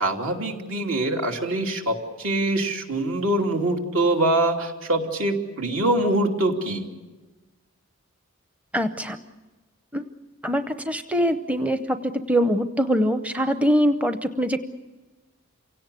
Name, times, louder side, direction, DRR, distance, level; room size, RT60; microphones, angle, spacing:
voice 1, 0.0-6.9, right 1 dB, 70° right, 2 dB, 3.1 m, -24 dB
voice 2, 8.7-9.2 9.9-10.0 10.4-14.7, equal, 5° right, 9 dB, 0.7 m, -23 dB
28.0 x 17.5 x 8.4 m, 1.2 s
head